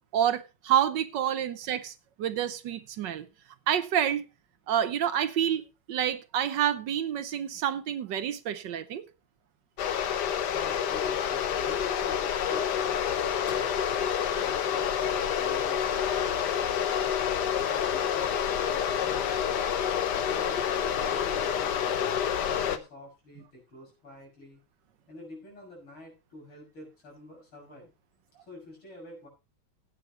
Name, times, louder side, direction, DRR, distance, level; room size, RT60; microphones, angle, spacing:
voice 1, 0.1-3.2 3.7-4.2 4.7-9.0, right 10 dB, 70° right, 1.4 m, -28 dB
sound 1, 9.8-22.8, left 8 dB, 60° left, 1.4 m, -28 dB
voice 2, 10.4-13.8 14.4-16.9 17.6-19.5 20.2-24.6 25.1-27.9 28.5-29.3, left 1 dB, 90° left, 7.4 m, -48 dB
16.0 x 9.4 x 3.0 m
omnidirectional pair, 2.2 m